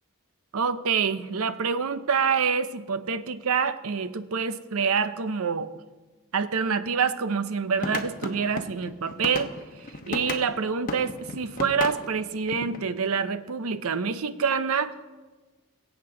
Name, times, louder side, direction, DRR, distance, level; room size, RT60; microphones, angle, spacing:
voice 1, 0.5-5.7 6.3-9.5 10.1-14.9, right 6 dB, 80° right, 12 dB, 0.6 m, -26 dB
sound 1, 7.7-10.5 10.9-12.8, left 2 dB, 40° left, 0.9 m, -34 dB
21.5 x 8.2 x 3.8 m, 1.3 s
head